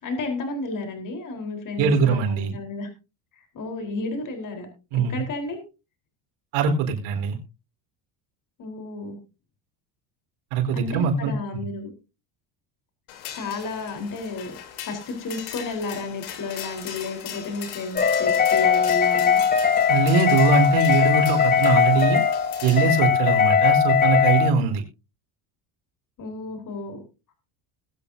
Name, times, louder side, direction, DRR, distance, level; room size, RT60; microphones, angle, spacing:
voice 1, 0.0-2.9 3.5-4.7 4.9-5.6 8.6-9.2 10.7-11.9 13.3-14.5 14.8-19.4 26.2-27.0, left 3 dB, 40° left, 5 dB, 4.1 m, -32 dB
voice 2, 1.8-2.6 4.9-5.2 6.5-7.4 10.5-11.6 19.9-22.2 22.6-24.8, right 4 dB, 80° right, 2 dB, 4.4 m, -22 dB
sound 1, 13.1-23.0, left 10 dB, 75° left, 3.5 m, -39 dB
sound 2, 17.9-24.5, left 7 dB, 20° left, 1.2 m, -20 dB
21.0 x 8.5 x 2.7 m, 0.30 s
cardioid pair, 120°, 47 cm